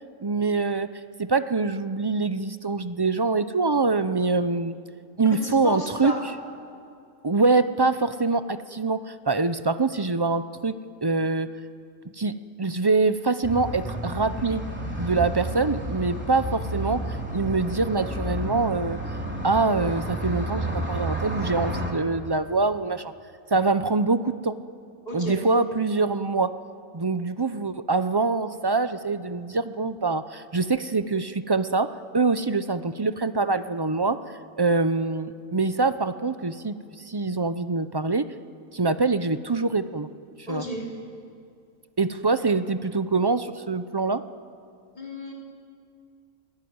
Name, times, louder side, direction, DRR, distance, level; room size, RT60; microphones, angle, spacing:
voice 1, 0.2-0.9 1.2-4.7 5.2-6.1 7.2-10.8 11.0-11.5 12.2-14.6 15.0-17.1 17.3-19.0 19.4-23.1 23.5-24.6 25.1-26.5 26.9-31.9 32.1-34.2 34.6-36.8 37.0-38.3 38.7-40.1 40.5-40.6 42.0-44.2, right 3 dB, 35° right, 12 dB, 0.4 m, -24 dB
voice 2, 5.2-6.2 25.0-25.4 40.5-40.9 44.9-45.3, left 1 dB, 30° left, -2 dB, 4.5 m, -33 dB
sound 1, 13.4-21.9, right 1 dB, 5° right, 3.6 m, -31 dB
29.0 x 19.0 x 9.6 m, 2.3 s
omnidirectional pair, 1.5 m